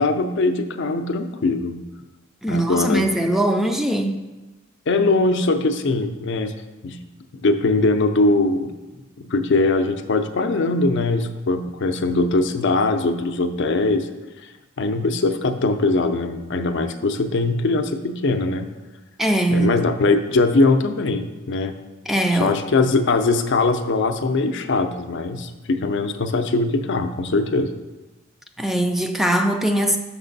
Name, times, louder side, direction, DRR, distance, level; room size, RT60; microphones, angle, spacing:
voice 1, 0.0-1.8 2.5-3.1 4.9-6.5 6.8-7.0 7.3-8.7 9.2-14.1 14.8-18.7 19.5-21.7 22.3-27.7, left 3 dB, 60° left, 8 dB, 0.5 m, -21 dB
voice 2, 2.4-4.2 19.2-19.8 22.1-22.6 28.6-30.0, right 1 dB, ahead, 4 dB, 0.4 m, -21 dB
6.5 x 6.0 x 4.0 m, 1.1 s
head